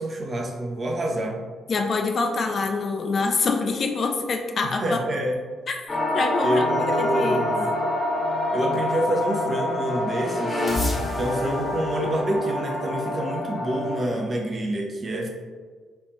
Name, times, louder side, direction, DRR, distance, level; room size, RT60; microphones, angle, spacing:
voice 1, 0.0-1.4 4.6-5.3 6.4-7.7 8.5-10.7 11.2-15.3, right 1 dB, 35° right, 1 dB, 0.6 m, -27 dB
voice 2, 1.7-5.0 5.7-7.5, left 4 dB, 45° left, 4 dB, 0.3 m, -26 dB
sound 1, 5.9-14.0, left 1 dB, 25° left, 0.7 m, -26 dB
3.2 x 2.4 x 3.0 m, 1.5 s
figure-of-eight pair, 40°, 0 cm